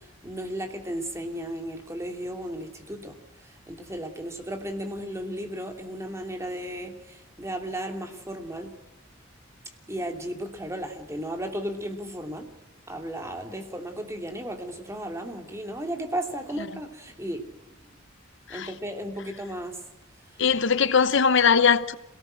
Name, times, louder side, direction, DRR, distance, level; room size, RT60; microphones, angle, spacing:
voice 1, 0.2-3.2 3.7-8.7 9.9-12.5 12.9-17.4 18.5-19.7, right 1 dB, 15° right, 2.9 m, -34 dB
voice 2, 20.4-22.0, left 6 dB, 65° left, 0.9 m, -20 dB
27.5 x 18.5 x 6.5 m
head